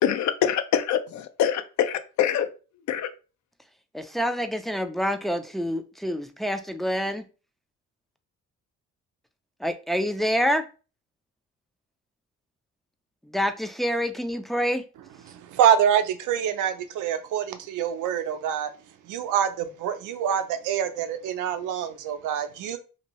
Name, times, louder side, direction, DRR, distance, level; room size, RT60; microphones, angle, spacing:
voice 1, 0.0-2.5 2.9-3.1, left 9 dB, 70° left, 0.5 m, -24 dB
voice 2, 3.9-7.2 9.6-10.6 13.3-14.8, equal, ahead, 0.3 m, -27 dB
voice 3, 15.3-18.7 19.1-22.8, right 9 dB, 85° right, 0.5 m, -25 dB
2.7 x 2.6 x 3.0 m
cardioid pair, 90°, 30 cm